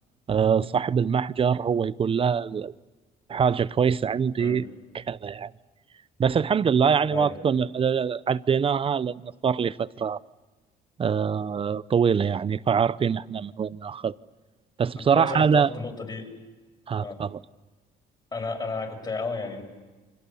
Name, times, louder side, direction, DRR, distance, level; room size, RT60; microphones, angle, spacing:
voice 1, 0.3-2.7 3.3-4.7 4.9-5.5 6.2-10.2 11.0-14.1 14.8-15.7 16.9-17.4, right 7 dB, 35° right, 0.8 m, -24 dB
voice 2, 15.0-16.3 17.0-17.2 18.3-19.6, left 3 dB, 25° left, 6.4 m, -33 dB
29.5 x 26.0 x 7.2 m
cardioid pair, 110°, 17 cm